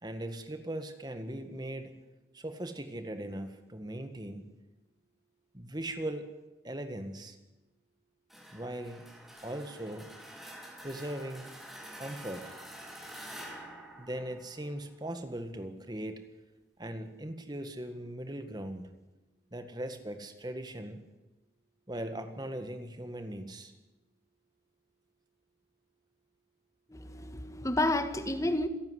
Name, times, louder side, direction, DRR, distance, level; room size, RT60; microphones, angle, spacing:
voice 1, 0.0-1.9 2.3-4.5 5.5-6.3 6.6-7.4 8.5-9.1 9.4-10.1 10.8-11.6 12.0-12.5 14.0-16.2 16.8-18.9 19.5-21.0 21.9-23.7, right 1 dB, 25° right, 8 dB, 1.6 m, -39 dB
sound 1, 8.3-15.0, right 1 dB, ahead, 3.5 m, -48 dB
voice 2, 26.9-28.7, left 1 dB, 20° left, 9 dB, 1.6 m, -30 dB
27.0 x 12.0 x 9.8 m, 1.1 s
head